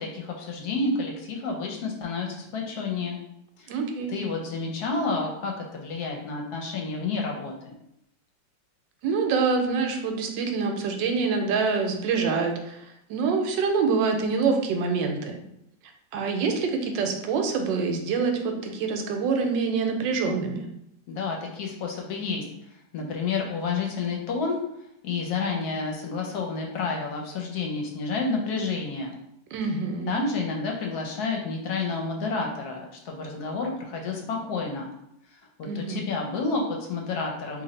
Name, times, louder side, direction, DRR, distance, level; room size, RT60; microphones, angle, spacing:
voice 1, 0.0-3.2 3.6-3.7 4.1-7.7 21.1-22.4 22.9-24.6 25.0-29.1 30.1-34.9 35.6-37.6, left 4 dB, 65° left, 1 dB, 1.0 m, -30 dB
voice 2, 3.7-4.1 9.0-12.8 13.1-15.3 16.1-20.7 29.5-30.2 35.6-36.0, right 4 dB, 75° right, 4 dB, 1.2 m, -26 dB
3.1 x 2.5 x 4.0 m, 0.78 s
omnidirectional pair, 2.0 m